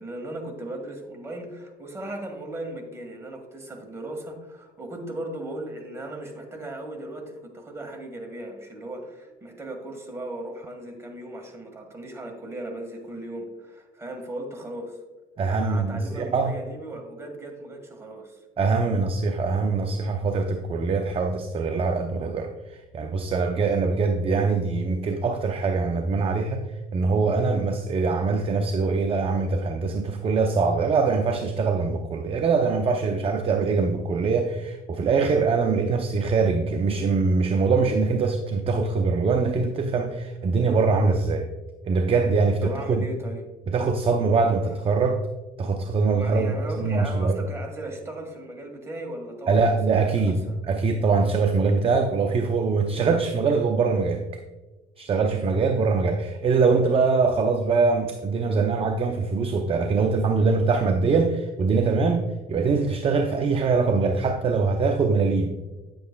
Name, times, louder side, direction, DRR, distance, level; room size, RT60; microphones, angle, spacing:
voice 1, 0.0-15.0 15.5-18.4 42.6-43.4 44.6-44.7 46.1-49.7 50.0-50.6, right 1 dB, 15° right, 2 dB, 1.6 m, -37 dB
voice 2, 15.4-16.5 18.6-26.6 26.9-41.5 41.8-43.1 43.7-45.2 45.6-47.4 49.5-54.4 55.0-65.5, right 4 dB, 35° right, 5 dB, 0.5 m, -23 dB
9.3 x 7.7 x 2.2 m, 1.2 s
cardioid pair, 110°, 17 cm